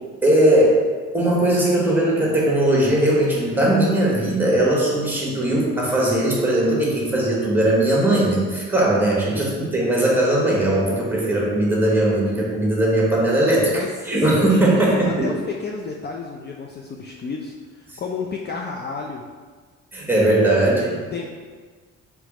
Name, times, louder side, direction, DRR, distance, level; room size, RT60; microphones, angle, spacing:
voice 1, 0.2-0.8 1.1-13.7 14.1-15.3 19.9-21.0, right 1 dB, 5° right, -4 dB, 1.3 m, -19 dB
voice 2, 9.3-9.7 13.7-19.3 20.9-21.3, left 5 dB, 35° left, 0 dB, 0.4 m, -32 dB
3.3 x 3.1 x 4.8 m, 1.5 s
cardioid pair, 90°, 30 cm